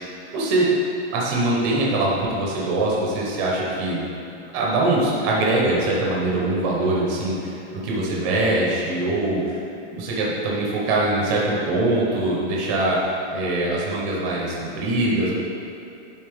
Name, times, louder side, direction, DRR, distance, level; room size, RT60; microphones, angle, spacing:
voice 1, 0.3-0.7 1.1-4.0 4.5-7.5 7.8-9.4 9.9-13.0 13.3-15.3, right 2 dB, 15° right, -4 dB, 0.6 m, -22 dB
10.5 x 4.1 x 3.4 m, 2.9 s
supercardioid pair, 180°, 36 cm